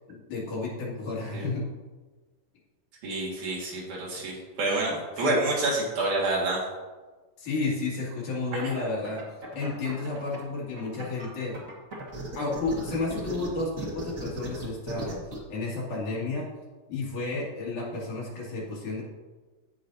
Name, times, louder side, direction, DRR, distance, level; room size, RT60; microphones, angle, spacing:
voice 1, 0.1-1.7 4.1-4.2 5.2-5.4 7.4-9.2 9.5-11.6 12.4-15.2 15.5-16.5 16.9-19.0, left 3 dB, 70° left, -5 dB, 3.6 m, -32 dB
voice 2, 3.0-6.6 8.5-8.7, right 2 dB, 70° right, -4 dB, 3.3 m, -28 dB
sound 1, 8.6-10.4 10.8-15.4, right 2 dB, 40° right, 1.1 m, -37 dB
15.0 x 5.4 x 2.7 m, 1.3 s
omnidirectional pair, 3.7 m